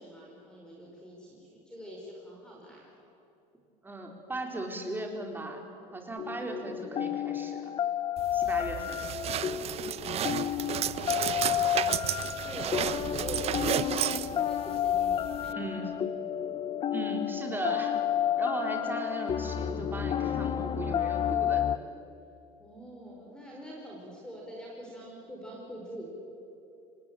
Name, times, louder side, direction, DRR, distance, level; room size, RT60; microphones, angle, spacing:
voice 1, 0.0-2.9 10.8-15.6 22.6-26.1, equal, 5° left, -3 dB, 5.3 m, -45 dB
voice 2, 3.8-7.7 8.3-9.0 15.5-16.0 16.9-17.9 18.4-21.6, right 2 dB, 10° right, 2 dB, 4.0 m, -37 dB
sound 1, 6.2-21.8, left 10 dB, 35° left, 0.8 m, -31 dB
sound 2, 8.2-15.5, right 11 dB, 40° right, 0.7 m, -33 dB
26.5 x 19.5 x 9.2 m, 2.8 s
cardioid pair, 135°, 16 cm